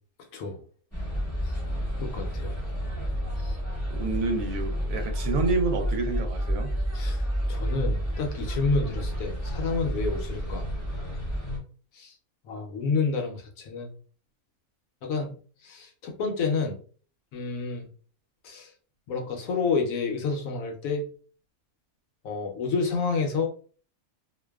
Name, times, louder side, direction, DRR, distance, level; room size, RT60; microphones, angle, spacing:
sound 1, 0.9-11.6, equal, 15° left, 0.6 m, -30 dB
voice 1, 2.0-2.5 3.4-3.6 6.9-7.2 7.5-10.6 12.0-12.1 12.5-13.9 15.0-15.4 15.6-16.8 17.3-17.9 18.4-18.7 19.1-21.1 22.2-23.5, left 4 dB, 75° left, 3 dB, 1.0 m, -29 dB
voice 2, 3.9-6.8, right 3 dB, 75° right, 5 dB, 1.0 m, -28 dB
2.5 x 2.2 x 2.2 m, 0.43 s
omnidirectional pair, 1.5 m